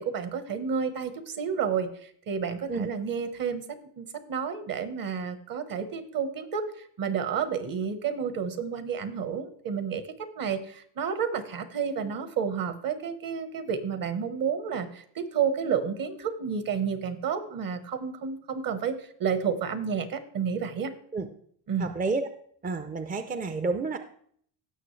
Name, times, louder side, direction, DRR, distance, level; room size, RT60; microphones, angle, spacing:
voice 1, 0.0-3.6 4.0-6.7 7.0-20.9 21.7-21.9, right 6 dB, 50° right, 11 dB, 1.2 m, -30 dB
voice 2, 21.8-22.3 22.6-24.0, right 3 dB, 20° right, 9 dB, 0.5 m, -30 dB
16.5 x 6.3 x 3.2 m, 0.62 s
cardioid pair, 110°, 42 cm